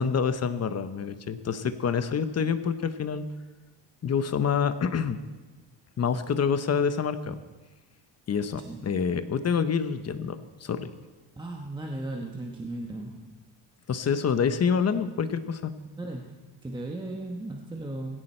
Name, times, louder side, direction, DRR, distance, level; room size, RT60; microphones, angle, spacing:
voice 1, 0.0-3.2 4.0-5.2 6.0-7.4 8.3-10.9 13.9-15.7, left 6 dB, 35° left, 11 dB, 0.9 m, -27 dB
voice 2, 11.4-13.3 16.0-18.2, right 2 dB, 10° right, 1 dB, 1.1 m, -36 dB
19.0 x 16.5 x 4.4 m, 1.2 s
cardioid pair, 165°, 44 cm